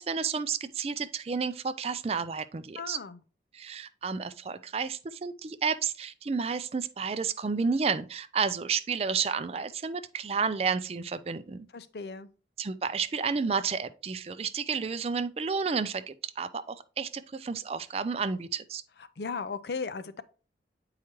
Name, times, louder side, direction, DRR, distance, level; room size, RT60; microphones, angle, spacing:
voice 1, 0.0-3.0 3.5-11.7 12.6-18.8, right 5 dB, 35° right, 0.4 m, -31 dB
voice 2, 2.8-3.2 11.7-12.3 19.2-20.2, left 4 dB, 65° left, 0.5 m, -36 dB
8.6 x 4.8 x 3.0 m
head